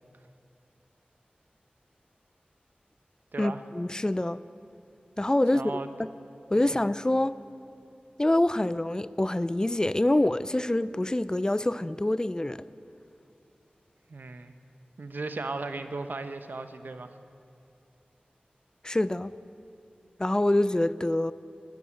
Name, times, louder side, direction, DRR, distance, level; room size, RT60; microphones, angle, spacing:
voice 1, 3.4-4.4 5.2-6.1 6.5-7.3 8.2-12.6 18.8-19.3 20.2-21.3, left 1 dB, 25° left, 0.3 m, -26 dB
voice 2, 5.5-5.9 6.5-6.7 14.1-14.5 15.0-17.2, right 3 dB, 75° right, 0.8 m, -36 dB
12.5 x 11.0 x 8.7 m
wide cardioid pair, 60°, 3 cm